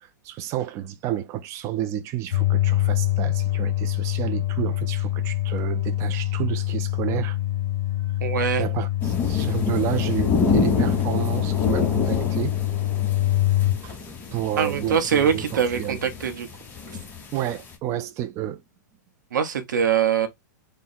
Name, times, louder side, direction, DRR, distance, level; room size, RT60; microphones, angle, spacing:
voice 1, 0.0-7.4 8.6-12.6 13.8-14.0 14.3-16.0 17.3-18.6, right 12 dB, 30° right, 0.4 m, -30 dB
sound 1, 2.3-13.8, left 14 dB, 60° left, 0.9 m, -25 dB
voice 2, 8.2-8.7 14.6-16.5 19.3-20.3, right 8 dB, 85° right, 0.9 m, -23 dB
sound 2, 9.0-17.7, left 4 dB, 20° left, 0.9 m, -28 dB
3.8 x 2.1 x 4.2 m
hypercardioid pair, 140°, 10 cm